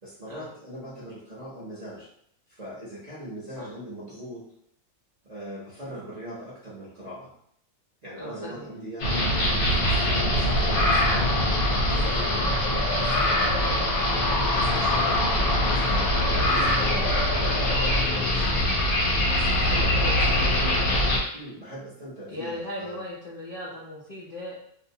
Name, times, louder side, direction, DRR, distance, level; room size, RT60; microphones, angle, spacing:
voice 1, 0.0-2.1 2.5-4.4 5.2-7.3 8.0-9.3 9.6-11.3 11.8-13.8 14.4-18.5 19.3-20.7 21.3-23.0, equal, 40° right, -9 dB, 0.6 m, -40 dB
voice 2, 8.2-8.7 12.1-12.5 16.3-16.7 19.6-20.4 22.3-24.6, left 1 dB, 60° left, -7 dB, 0.5 m, -38 dB
sound 1, 9.0-21.2, left 1 dB, 75° left, 1.2 m, -23 dB
2.7 x 2.0 x 2.7 m, 0.69 s
omnidirectional pair, 1.5 m